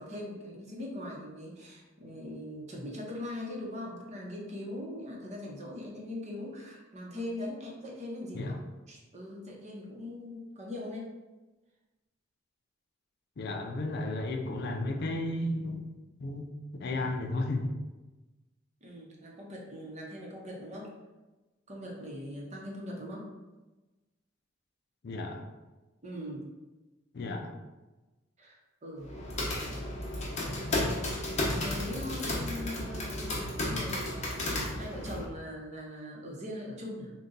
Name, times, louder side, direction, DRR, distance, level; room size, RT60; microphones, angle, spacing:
voice 1, 0.0-8.6 8.9-11.1 18.8-20.9 21.7-23.3 26.0-26.4 28.4-29.1 31.6-37.1, left 1 dB, 35° right, -2 dB, 0.8 m, -41 dB
voice 2, 13.4-15.9 16.2-17.7 25.0-25.5 27.1-27.6, left 2 dB, 55° left, 3 dB, 0.4 m, -33 dB
sound 1, 29.0-35.2, left 1 dB, 35° left, 0.8 m, -33 dB
3.9 x 2.2 x 3.8 m, 1.1 s
head